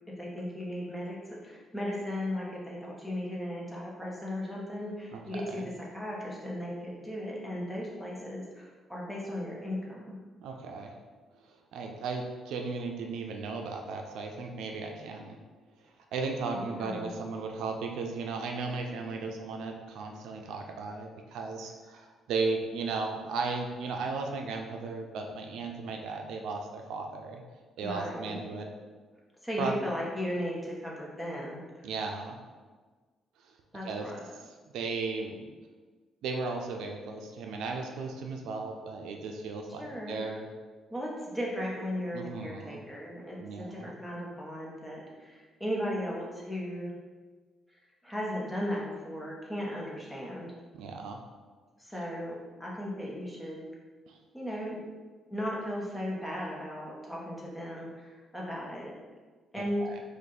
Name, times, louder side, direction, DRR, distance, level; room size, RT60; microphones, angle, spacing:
voice 1, 0.2-10.2 16.5-17.1 27.8-28.4 29.4-31.9 33.7-34.2 39.8-40.2 40.9-46.9 48.0-50.5 51.8-53.7 54.3-54.8 55.3-59.0 59.5-59.9, equal, 5° left, -4 dB, 1.3 m, -36 dB
voice 2, 5.1-5.7 10.4-10.9 11.4-15.4 16.1-27.4 27.8-28.7 29.6-29.7 31.8-32.4 33.8-34.1 34.7-35.4 36.2-40.5 42.1-42.8 43.4-43.9 50.7-51.2 54.1-54.2 59.8-60.0, right 4 dB, 85° right, 2 dB, 0.5 m, -36 dB
4.8 x 2.6 x 4.2 m, 1.4 s
cardioid pair, 90°, 0 cm